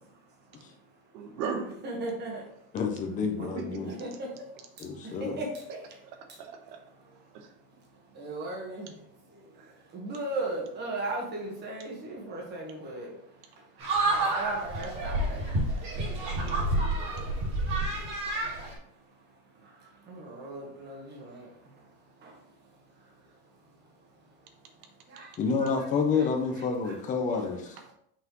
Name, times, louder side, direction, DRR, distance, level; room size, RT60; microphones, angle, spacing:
voice 1, 1.1-1.7 3.5-4.0 6.0-6.8 7.3-7.5 9.6-9.7 17.0-17.1, right 5 dB, 85° right, 5 dB, 1.3 m, -37 dB
voice 2, 1.8-2.4 3.4-3.5 3.8-4.3 5.2-5.5 8.2-8.9 9.9-13.1 13.8-15.4 15.9-16.0 20.1-21.5 25.1-25.3 25.6-25.7 26.2-26.3 26.8-26.9, right 2 dB, 20° right, 0 dB, 1.3 m, -36 dB
voice 3, 2.7-3.9 4.8-5.4 25.4-27.8, left 5 dB, 20° left, 3 dB, 0.5 m, -29 dB
sound 1, 13.8-18.7, right 2 dB, 50° right, 2.5 m, -29 dB
5.8 x 5.6 x 3.0 m, 0.71 s
cardioid pair, 175°, 46 cm